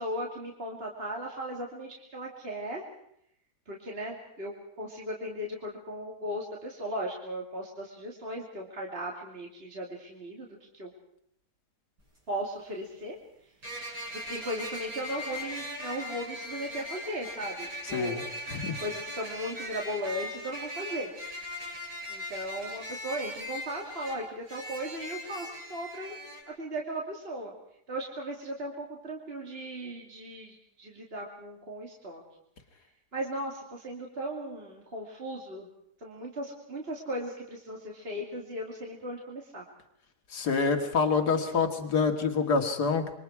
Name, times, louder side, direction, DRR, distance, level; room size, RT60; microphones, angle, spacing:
voice 1, 0.0-2.8 3.7-4.5 4.8-10.9 12.3-13.2 14.1-18.3 18.8-21.1 22.1-26.1 26.5-27.5 27.9-32.2 33.1-35.7 36.0-39.6, equal, 35° right, -1 dB, 3.0 m, -37 dB
sound 1, 12.0-12.1 13.6-26.4, equal, 80° right, 7.8 m, -39 dB
voice 2, 17.9-18.2 18.5-18.8 40.3-43.0, left 5 dB, 70° left, 5 dB, 2.6 m, -26 dB
28.0 x 23.5 x 4.8 m, 0.74 s
omnidirectional pair, 1.8 m